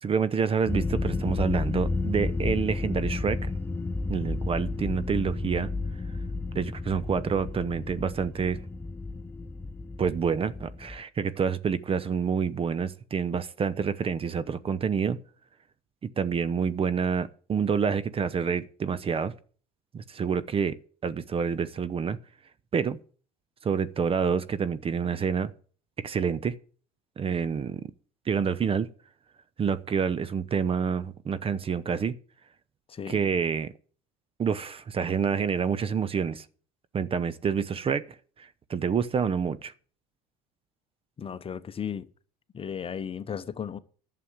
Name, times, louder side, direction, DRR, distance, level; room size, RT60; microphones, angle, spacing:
voice 1, 0.0-3.5 4.1-5.7 6.5-8.6 10.0-15.2 16.0-19.3 19.9-20.8 21.0-22.2 22.7-23.0 23.6-25.5 26.0-26.5 27.2-27.9 28.3-28.9 29.6-32.2 33.1-33.7 34.4-36.5 36.9-38.0 38.4-39.7, right 6 dB, 30° right, 0.8 m, -28 dB
sound 1, 0.7-11.0, left 3 dB, 10° left, 0.5 m, -32 dB
voice 2, 32.9-33.2 41.2-42.0 42.5-43.8, left 7 dB, 30° left, 0.9 m, -35 dB
11.5 x 6.9 x 8.1 m
hypercardioid pair, 75°, 18 cm